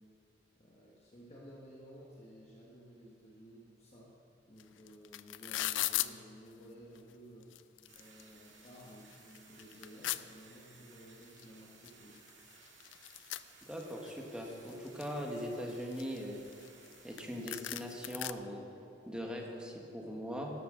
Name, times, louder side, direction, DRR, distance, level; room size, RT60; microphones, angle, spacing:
voice 1, 0.6-4.1 4.5-7.5 7.9-12.2, equal, 35° left, -5 dB, 1.5 m, -54 dB
sound 1, 4.6-4.7 4.9-6.1 7.0-7.1 7.4-8.2 8.7-8.8 9.1-10.2 11.4-11.5 11.8-11.9 12.2-14.1 14.5-15.2 15.7-16.9 17.2-17.3 17.5-18.3, left 15 dB, 85° left, 0.4 m, -37 dB
sound 2, 7.9-18.1, right 4 dB, 80° right, 1.8 m, -60 dB
voice 2, 13.7-16.4 17.0-18.6 19.0-20.5, equal, 5° right, 0 dB, 1.3 m, -40 dB
12.5 x 12.5 x 3.9 m, 2.9 s
head